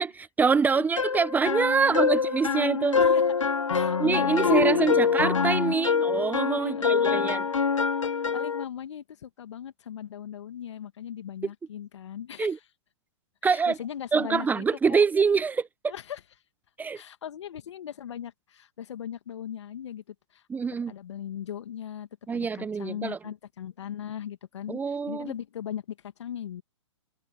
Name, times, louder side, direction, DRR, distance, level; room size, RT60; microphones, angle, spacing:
voice 1, 0.4-3.0 4.0-7.4 12.4-12.6 13.4-13.7 14.1-15.7 16.8-17.0 20.5-20.9 22.3-23.2 24.7-25.3, right 5 dB, 10° right, 1.1 m, -25 dB
sound 1, 1.0-8.6, left 6 dB, 85° left, 1.8 m, -25 dB
voice 2, 3.7-5.2 5.6-5.7 6.6-7.3 8.3-12.6 13.4-15.0 15.8-16.2 16.9-20.4 20.9-26.6, left 9 dB, 65° left, 2.4 m, -39 dB
hypercardioid pair, 125°, 16 cm